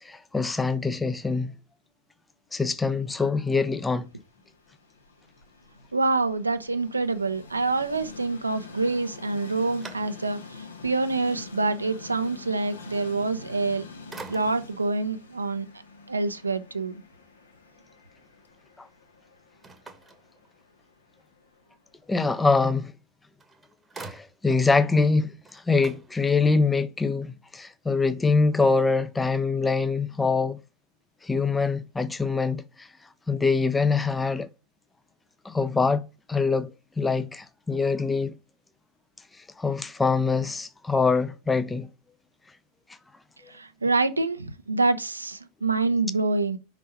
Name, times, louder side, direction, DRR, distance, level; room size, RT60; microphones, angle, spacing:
voice 1, 0.0-1.5 2.5-4.1 18.8-18.9 22.1-22.9 24.0-30.6 31.2-32.9 33.3-34.5 35.4-36.0 36.3-36.7 37.0-38.4 39.6-41.9, left 4 dB, 10° left, 0.5 m, -24 dB
Train, 3.9-21.9, left 4 dB, 70° left, 1.0 m, -46 dB
voice 2, 5.9-10.4 10.8-13.8 14.3-15.7 16.1-17.0 43.5-46.6, right 3 dB, 80° right, 0.7 m, -26 dB
sound 1, 9.7-10.6 11.1-11.2 13.5-13.8 14.1-14.9 19.6-20.9 23.0-23.1 23.4-24.7 25.1-25.2 25.4-26.7, right 3 dB, 15° right, 1.0 m, -46 dB
5.5 x 4.0 x 5.6 m
figure-of-eight pair, 90°, 0 cm